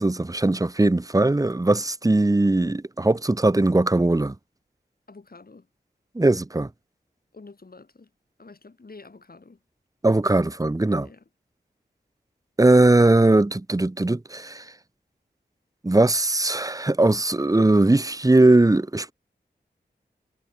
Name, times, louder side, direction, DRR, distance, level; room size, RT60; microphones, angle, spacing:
voice 1, 0.0-4.3 6.1-6.7 10.0-11.1 12.6-14.7 15.8-19.1, right 2 dB, 20° right, 0.9 m, -19 dB
voice 2, 5.1-5.7 7.3-8.1 8.4-9.6 11.0-11.3, left 3 dB, 55° left, 7.1 m, -47 dB
cardioid pair, 45°, 18 cm